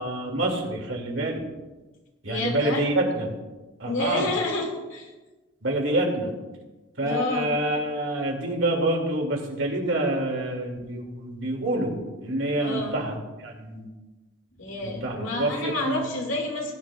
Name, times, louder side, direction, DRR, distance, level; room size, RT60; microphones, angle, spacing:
voice 1, 0.0-1.4 2.2-3.3 3.8-4.3 5.6-6.3 7.0-13.2 13.4-13.9 14.8-16.0, right 1 dB, 80° right, 1 dB, 2.4 m, -27 dB
voice 2, 2.3-2.9 3.8-5.1 7.0-7.6 12.6-13.0 14.6-16.7, left 2 dB, 90° left, 1 dB, 2.3 m, -29 dB
19.0 x 10.0 x 2.4 m, 1.2 s
head